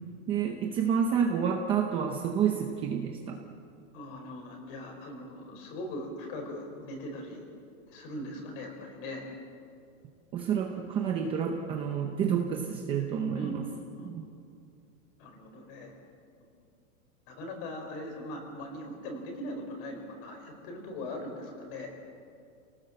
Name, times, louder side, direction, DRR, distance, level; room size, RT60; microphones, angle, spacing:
voice 1, 0.3-3.4 10.3-13.7 14.0-14.2, right 7 dB, 15° right, 2 dB, 0.7 m, -29 dB
voice 2, 3.9-7.4 7.9-9.3 13.3-14.3 15.2-15.9 16.4-16.5 17.3-21.9, left 1 dB, 35° left, 3 dB, 5.0 m, -40 dB
29.0 x 18.5 x 7.7 m, 2.4 s
supercardioid pair, 175°, 43 cm